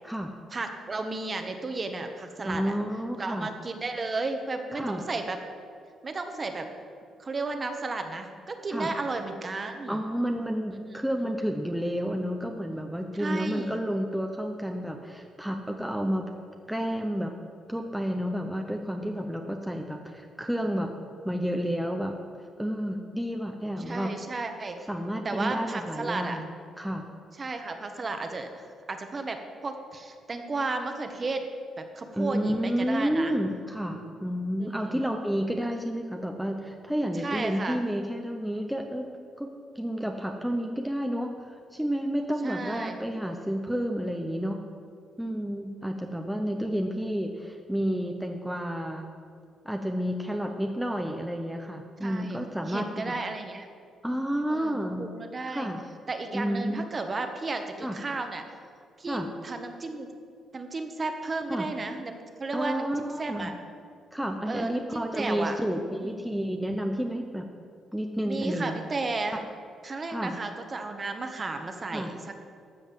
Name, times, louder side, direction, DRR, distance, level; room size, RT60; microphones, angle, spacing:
voice 1, 0.5-2.7 3.2-5.4 6.0-6.7 7.2-10.0 10.9-11.0 13.2-13.8 23.9-24.8 25.2-26.4 27.4-31.5 31.8-33.4 34.6-35.0 37.2-37.8 42.4-43.0 52.0-52.4 52.7-53.7 54.5-55.7 56.1-58.4 59.0-60.1 60.5-63.5 64.5-65.6 66.0-66.2 68.2-69.4 69.8-72.3, right 3 dB, 35° right, 6 dB, 1.3 m, -33 dB
voice 2, 2.4-3.5 4.7-5.0 8.7-8.9 9.9-16.3 16.7-17.3 17.7-20.9 21.2-22.2 22.6-24.1 24.9-27.0 32.1-39.1 39.4-39.5 39.7-44.6 45.2-49.1 49.6-53.1 54.0-55.1 55.5-55.8 56.3-56.8 57.8-58.0 59.1-59.3 61.5-61.7 62.5-63.5 64.1-67.5 67.9-68.8 70.1-70.4 71.9-72.1, equal, 5° right, 3 dB, 0.8 m, -30 dB
13.5 x 5.3 x 7.7 m, 2.2 s
cardioid pair, 90°, 0 cm